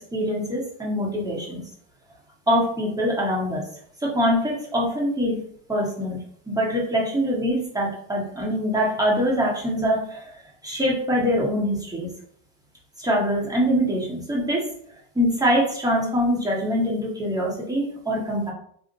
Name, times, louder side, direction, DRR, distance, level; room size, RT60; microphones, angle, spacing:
voice 1, 0.1-1.6 2.5-3.6 4.0-5.4 5.7-6.2 6.5-10.3 10.6-12.1 13.0-14.7 15.1-18.5, equal, 10° right, -4 dB, 1.4 m, -24 dB
3.7 x 2.5 x 2.6 m, 0.62 s
hypercardioid pair, 85°, 44 cm